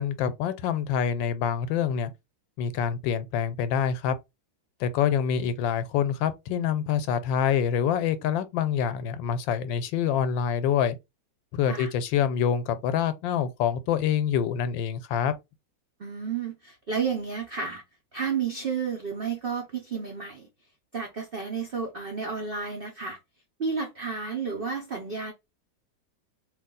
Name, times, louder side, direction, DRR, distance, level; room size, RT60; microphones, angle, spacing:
voice 1, 0.0-2.1 2.6-4.2 4.8-10.9 11.5-15.3, left 8 dB, 90° left, 1.3 m, -26 dB
voice 2, 16.0-17.8 18.1-20.5 20.9-23.2 23.6-25.3, right 5 dB, 85° right, 0.5 m, -31 dB
3.3 x 2.6 x 3.7 m
omnidirectional pair, 2.0 m